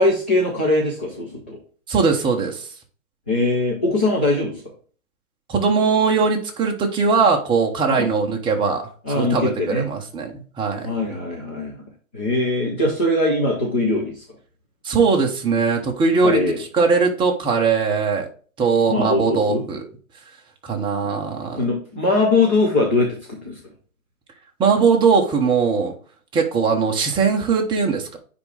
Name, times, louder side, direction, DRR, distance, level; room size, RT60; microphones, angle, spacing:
voice 1, 0.0-1.6 3.3-4.6 7.9-8.1 9.1-9.9 10.8-11.8 12.1-14.2 16.2-16.6 18.9-19.6 21.5-23.6, left 2 dB, 10° left, -3 dB, 0.3 m, -21 dB
voice 2, 1.9-2.7 5.5-8.8 9.1-10.9 14.8-16.4 16.7-18.3 18.6-19.8 20.6-21.6 24.6-25.9 26.3-28.2, right 5 dB, 10° right, 1 dB, 1.0 m, -20 dB
9.6 x 3.7 x 3.3 m, 0.41 s
hypercardioid pair, 135°, 43 cm